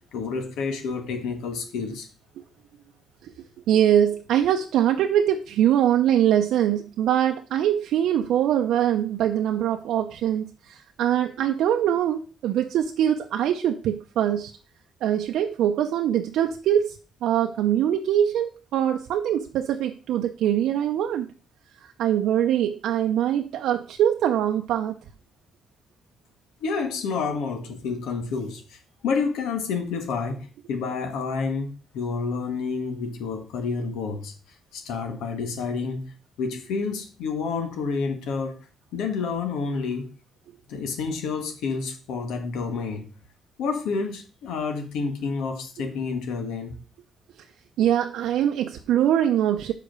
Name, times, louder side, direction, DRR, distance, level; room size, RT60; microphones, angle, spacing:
voice 1, 0.0-2.1 26.6-34.3 34.7-36.1 36.4-38.6 38.9-40.1 40.7-43.1 43.6-46.8, left 5 dB, 90° left, 1.6 m, -29 dB
voice 2, 3.7-14.5 15.0-21.3 22.0-25.0 47.8-49.7, right 10 dB, 80° right, 0.6 m, -23 dB
5.7 x 5.0 x 6.5 m
cardioid pair, 90°, 0 cm